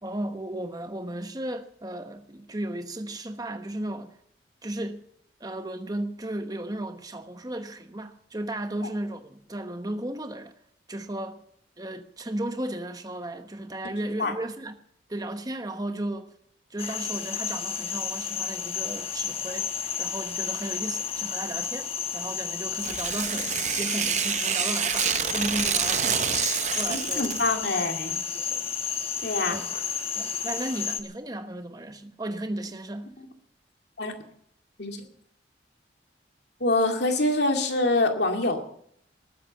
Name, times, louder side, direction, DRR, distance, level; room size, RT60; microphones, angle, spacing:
voice 1, 0.0-4.2 4.6-5.0 5.4-10.5 10.9-11.4 11.8-14.8 15.1-16.3 16.7-19.7 20.0-26.4 26.8-27.3 27.7-27.8 28.3-28.7 29.5-29.6 30.1-33.1, right 1 dB, 20° right, 1.1 m, -35 dB
sound 1, 16.8-31.0, left 7 dB, 30° left, 1.1 m, -32 dB
Tearing, 22.7-27.6, right 9 dB, 40° right, 0.6 m, -28 dB
voice 2, 26.9-28.2 29.2-29.6 33.2-33.3 34.0-34.1 34.8-35.0 36.6-38.6, left 2 dB, 65° left, 2.3 m, -25 dB
19.0 x 8.4 x 7.9 m
head